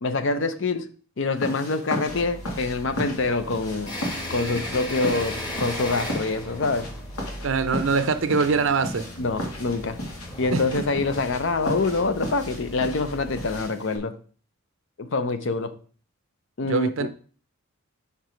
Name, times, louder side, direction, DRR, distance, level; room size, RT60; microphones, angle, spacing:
voice 1, 0.0-0.9 1.2-3.9 4.3-6.9 9.2-10.0 10.4-14.1 15.0-15.7 16.6-17.1, left 3 dB, 55° left, 0.6 m, -25 dB
sound 1, 1.4-14.0, left 1 dB, 85° left, 1.9 m, -36 dB
sound 2, 2.1-13.6, left 1 dB, 20° left, 1.1 m, -37 dB
voice 2, 7.4-9.0 10.5-10.8 16.6-17.1, right 4 dB, 60° right, 0.6 m, -23 dB
5.7 x 4.6 x 5.0 m
head